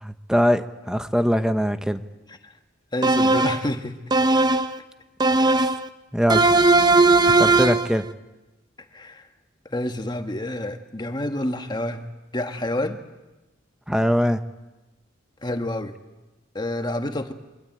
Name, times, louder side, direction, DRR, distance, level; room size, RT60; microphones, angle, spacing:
voice 1, 0.0-2.0 5.4-5.6 6.1-6.4 7.2-8.0 13.9-14.4, equal, 5° right, 9 dB, 1.1 m, -22 dB
voice 2, 2.9-4.0 8.9-9.2 9.7-12.0 12.3-13.0 15.4-16.0 16.5-17.3, left 1 dB, 20° left, 6 dB, 1.7 m, -28 dB
sound 1, 3.0-3.7 4.1-4.8 5.2-5.9 6.3-7.9, right 3 dB, 20° right, 0.8 m, -18 dB
25.0 x 22.5 x 9.1 m, 1.1 s
head